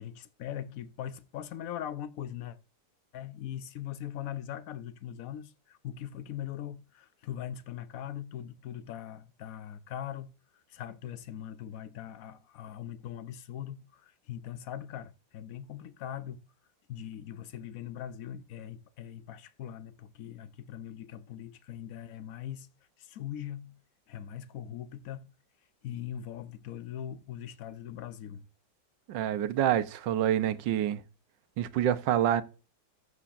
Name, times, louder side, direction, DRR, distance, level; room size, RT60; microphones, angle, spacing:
voice 1, 0.0-2.6 3.1-10.3 10.7-16.4 16.9-22.7 23.0-23.8 24.1-25.3 25.8-28.4, left 10 dB, 60° left, 1.0 m, -41 dB
voice 2, 29.1-31.0 31.6-32.4, right 11 dB, 75° right, 1.4 m, -27 dB
14.0 x 8.1 x 2.6 m
omnidirectional pair, 2.0 m